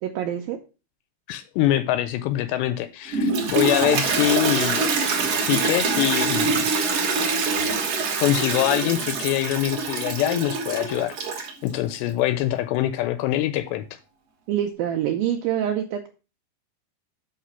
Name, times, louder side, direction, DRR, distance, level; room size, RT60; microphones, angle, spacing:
voice 1, 0.0-0.6 14.5-16.1, right 10 dB, 85° right, 2.0 m, -25 dB
voice 2, 1.3-4.9 5.3-6.7 8.2-13.9, left 13 dB, 85° left, 2.7 m, -24 dB
Toilet flush, 3.1-11.7, right 4 dB, 65° right, 1.5 m, -24 dB
5.8 x 5.6 x 5.5 m
omnidirectional pair, 4.9 m